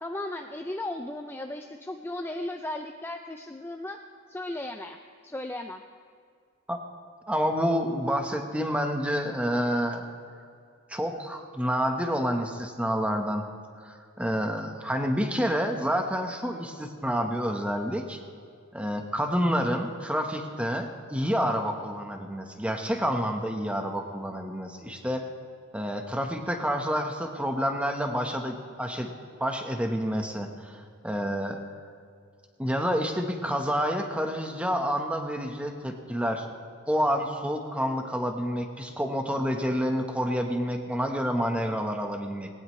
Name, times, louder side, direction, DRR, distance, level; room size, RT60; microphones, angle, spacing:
voice 1, 0.0-4.0 4.3-5.8, left 1 dB, 10° left, 5 dB, 0.5 m, -36 dB
voice 2, 7.3-10.0 10.9-13.5 13.8-18.2 18.7-25.2 25.7-29.1 29.4-31.6 32.6-36.4 36.9-42.5, equal, 5° right, 4 dB, 1.2 m, -28 dB
19.5 x 18.0 x 3.2 m, 2.3 s
head